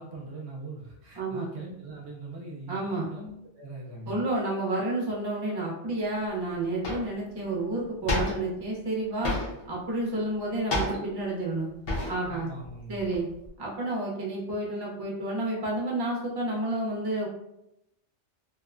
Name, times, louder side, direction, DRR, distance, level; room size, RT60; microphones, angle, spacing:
voice 1, 0.0-2.8 3.1-4.2 12.3-13.0, right 2 dB, 70° right, -1 dB, 0.8 m, -41 dB
voice 2, 1.2-1.5 2.7-3.1 4.1-9.4 9.7-11.7 12.1-12.5 12.9-13.3 13.6-17.3, right 2 dB, 25° right, -4 dB, 0.5 m, -30 dB
sound 1, 6.2-6.3 6.8-7.2 8.1-8.6 9.2-9.7 10.7-11.3 11.9-12.4 12.6-13.5, left 1 dB, 55° left, 0.8 m, -31 dB
2.9 x 2.1 x 2.4 m, 0.84 s
omnidirectional pair, 1.3 m